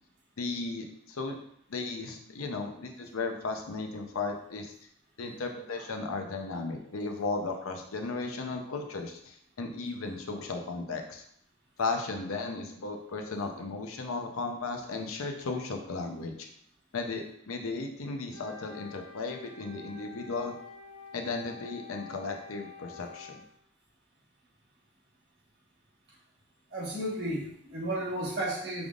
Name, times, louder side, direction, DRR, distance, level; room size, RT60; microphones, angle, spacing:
voice 1, 0.4-1.4 1.7-4.7 5.2-11.2 11.8-16.5 16.9-20.5 21.1-23.4, left 3 dB, 80° left, 4 dB, 0.6 m, -35 dB
Wind instrument woodwind instrument, 18.3-23.5, left 4 dB, ahead, 1.1 m, -48 dB
voice 2, 26.7-28.9, right 1 dB, 50° right, -5 dB, 1.3 m, -33 dB
5.0 x 3.5 x 2.4 m, 0.70 s
head